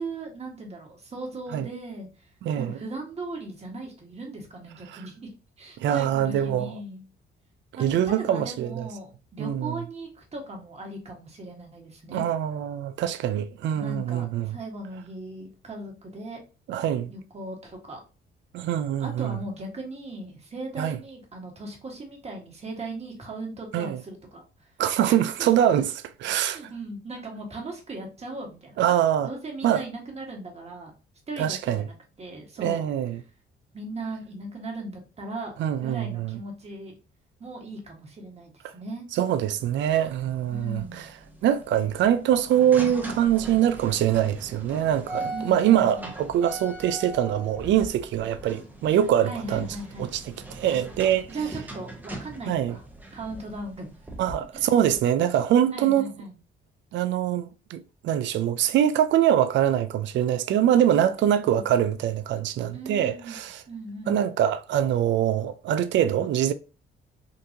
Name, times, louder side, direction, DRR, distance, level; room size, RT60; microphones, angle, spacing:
voice 1, 0.0-2.3 2.6-5.3 5.6-7.0 7.7-12.2 13.7-16.4 17.0-18.0 19.0-24.7 25.4-25.5 26.3-28.8 29.2-30.9 31.3-32.8 33.7-35.5 35.8-37.0 37.4-39.0 40.5-41.0 45.3-46.2 49.2-50.1 50.7-50.8 51.3-52.8 53.1-53.9 54.5-54.7 55.7-56.4 61.2-61.6 62.7-63.4 63.7-64.2, right 2 dB, 30° right, 1.5 m, -38 dB
voice 2, 2.4-2.7 4.9-5.0 5.8-6.7 7.8-8.9 9.4-9.8 12.1-14.6 16.7-17.1 18.5-19.4 20.8-21.0 23.7-24.0 24.8-25.9 26.2-26.6 28.8-29.3 29.6-29.8 31.4-31.8 32.6-33.2 35.6-36.4 39.1-41.1 41.4-49.6 50.0-50.2 50.5-51.3 52.5-52.7 54.2-56.1 56.9-63.6 64.1-66.5, right 10 dB, 70° right, 0.4 m, -24 dB
sound 1, 39.3-55.0, right 2 dB, 10° right, 0.8 m, -41 dB
3.9 x 2.6 x 2.8 m
cardioid pair, 90°, 20 cm